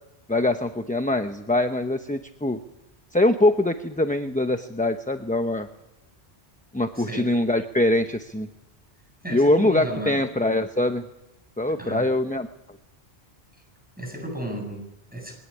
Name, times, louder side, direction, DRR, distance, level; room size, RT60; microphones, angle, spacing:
voice 1, 0.3-2.6 3.1-5.7 6.7-8.5 9.3-11.1 11.6-12.5, left 1 dB, 10° left, 7 dB, 0.8 m, -23 dB
voice 2, 6.9-7.3 9.2-10.2 11.8-12.0 14.0-15.3, equal, 10° right, 1 dB, 7.5 m, -33 dB
22.5 x 18.0 x 9.8 m, 0.96 s
omnidirectional pair, 1.1 m